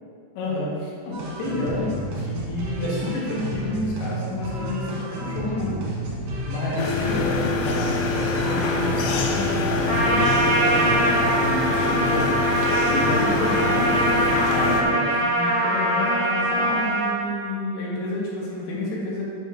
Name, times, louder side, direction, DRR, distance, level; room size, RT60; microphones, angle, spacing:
voice 1, 0.4-5.8 6.5-8.0 8.4-12.6 12.9-19.4, left 1 dB, 65° left, -6 dB, 3.9 m, -30 dB
sound 1, 1.1-10.9, equal, 65° right, 3.5 m, -31 dB
sound 2, 6.8-14.8, left 3 dB, 85° left, 3.5 m, -24 dB
Trumpet, 9.9-17.2, right 1 dB, 80° right, 1.1 m, -23 dB
8.5 x 4.4 x 6.8 m, 2.2 s
omnidirectional pair, 5.7 m